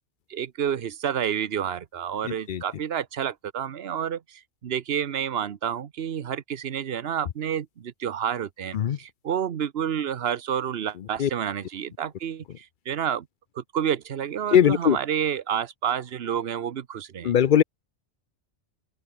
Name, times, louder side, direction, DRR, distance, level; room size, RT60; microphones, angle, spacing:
voice 1, 0.3-13.3 13.6-17.3, right 9 dB, 65° right, 1.1 m, -29 dB
voice 2, 2.2-2.6 8.7-9.0 11.2-11.3 14.5-15.0 17.2-17.6, left 9 dB, 55° left, 0.6 m, -20 dB
open air
omnidirectional pair, 1.1 m